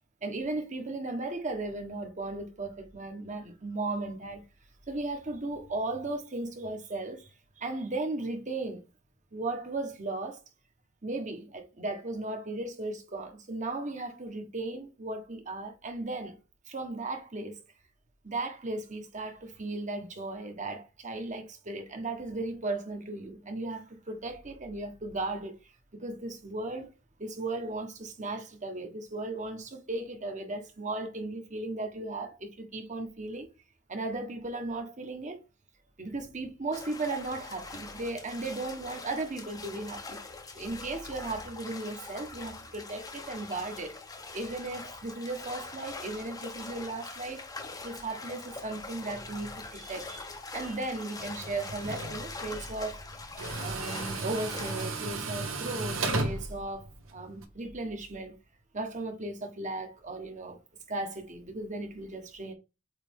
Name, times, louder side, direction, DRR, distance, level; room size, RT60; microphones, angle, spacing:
voice 1, 0.2-4.4 4.9-7.3 7.6-8.8 9.3-10.4 11.0-16.4 16.7-17.6 18.2-25.5 25.9-26.9 27.2-33.5 33.9-35.4 36.0-40.2 40.5-47.4 47.8-53.0 53.6-58.4 58.7-60.6 60.9-62.5, right 2 dB, 35° right, 1.3 m, -36 dB
sound 1, 36.7-55.2, left 3 dB, 20° left, 0.9 m, -43 dB
Tools, 51.2-57.4, right 3 dB, 75° right, 1.3 m, -35 dB
8.0 x 3.3 x 3.7 m
head